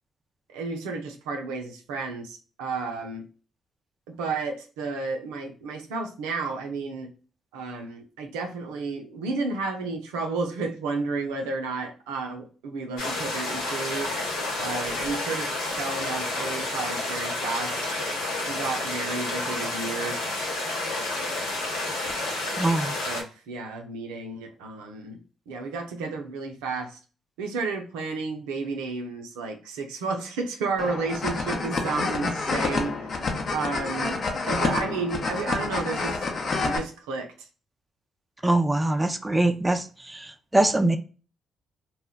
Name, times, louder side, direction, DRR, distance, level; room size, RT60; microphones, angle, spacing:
voice 1, 0.5-3.2 4.2-7.1 7.5-14.1 14.6-17.9 18.5-20.2 23.0-25.2 25.5-27.0 27.4-33.2 33.5-36.3 36.6-37.5, right 4 dB, 80° right, 2 dB, 0.5 m, -32 dB
sound 1, 13.0-23.2, left 2 dB, 80° left, 0.8 m, -30 dB
voice 2, 22.6-22.9 38.4-41.0, right 2 dB, 15° right, 7 dB, 0.4 m, -23 dB
sound 2, 30.8-36.8, left 3 dB, 50° left, 0.7 m, -28 dB
2.2 x 2.1 x 3.5 m, 0.36 s
hypercardioid pair, 45°, 0 cm